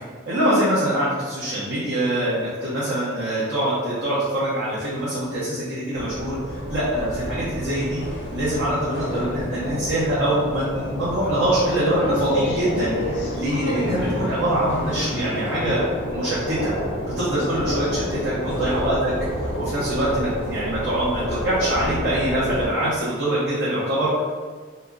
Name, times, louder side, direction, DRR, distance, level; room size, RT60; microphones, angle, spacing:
voice 1, 0.3-6.4 6.7-8.0 8.3-12.9 13.3-16.7 17.1-19.1 19.6-24.2, right 1 dB, 80° right, -10 dB, 0.9 m, -24 dB
sound 1, 5.9-22.7, equal, 70° left, 0.6 m, -29 dB
2.8 x 2.3 x 3.7 m, 1.5 s
head